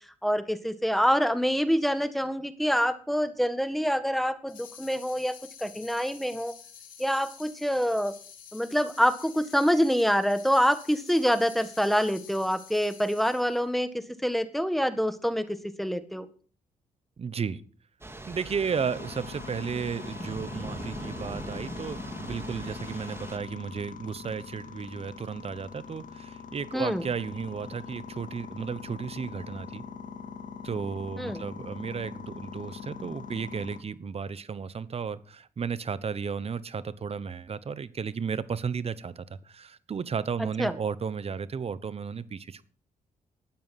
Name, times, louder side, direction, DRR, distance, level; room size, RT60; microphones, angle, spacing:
voice 1, 0.2-5.3 5.6-6.5 7.0-8.1 8.5-13.9 14.2-15.4 15.8-16.2 26.7-27.0 31.2-31.4 40.6-40.7, equal, ahead, 11 dB, 1.6 m, -26 dB
sound 1, 4.5-13.6, left 8 dB, 85° left, 3.0 m, -49 dB
voice 2, 17.2-17.6 18.3-29.8 30.6-42.6, right 6 dB, 50° right, 16 dB, 1.0 m, -34 dB
Thunder / Rain, 18.0-23.4, right 2 dB, 20° right, 2.5 m, -41 dB
sound 2, 18.7-33.8, left 6 dB, 70° left, 2.3 m, -42 dB
13.0 x 9.4 x 6.0 m, 0.43 s
cardioid pair, 70°, 14 cm